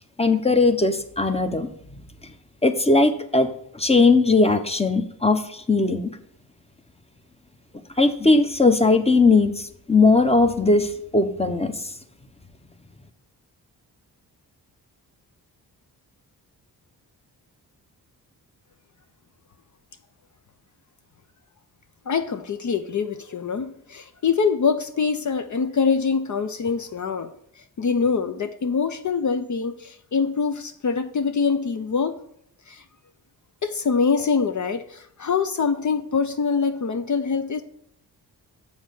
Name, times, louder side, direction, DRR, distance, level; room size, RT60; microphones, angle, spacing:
voice 1, 0.2-1.7 2.6-3.5 3.7-6.1 8.0-11.8, left 3 dB, 15° left, 8 dB, 0.8 m, -19 dB
voice 2, 22.1-27.3 27.8-32.2 32.7-32.8 33.6-37.6, left 5 dB, 45° left, 8 dB, 0.7 m, -24 dB
7.2 x 4.0 x 6.5 m, 0.72 s
cardioid pair, 55°, 41 cm